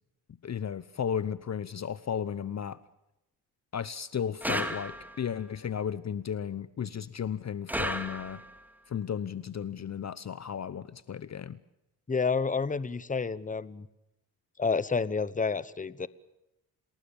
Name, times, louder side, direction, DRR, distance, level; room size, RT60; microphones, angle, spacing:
voice 1, 0.4-2.8 3.7-8.4 8.9-11.6, left 8 dB, 40° left, 17 dB, 0.9 m, -34 dB
sound 1, 4.4-5.3 7.7-8.6, equal, 5° right, 2.8 m, -34 dB
voice 2, 12.1-13.9 14.6-16.1, left 5 dB, 20° left, 18 dB, 1.1 m, -29 dB
28.5 x 20.0 x 7.0 m, 0.91 s
cardioid pair, 100°, 41 cm